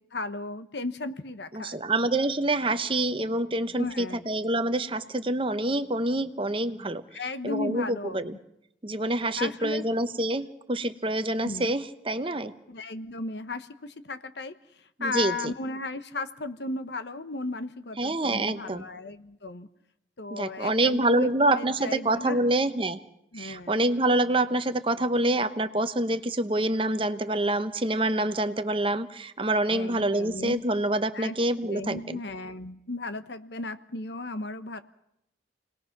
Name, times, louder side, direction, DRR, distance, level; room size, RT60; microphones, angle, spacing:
voice 1, 0.1-1.8 3.8-4.2 7.1-8.4 9.4-9.8 11.4-11.7 12.7-14.5 15.0-19.7 20.2-22.5 23.3-23.8 29.7-30.6 31.1-31.3 31.6-34.8, left 2 dB, 65° left, 11 dB, 1.1 m, -35 dB
voice 2, 1.5-7.0 7.4-8.4 8.8-12.5 15.0-15.5 18.0-18.8 20.3-23.0 23.4-32.2, right 1 dB, 30° right, 10 dB, 0.9 m, -26 dB
29.0 x 19.5 x 6.0 m, 0.79 s
head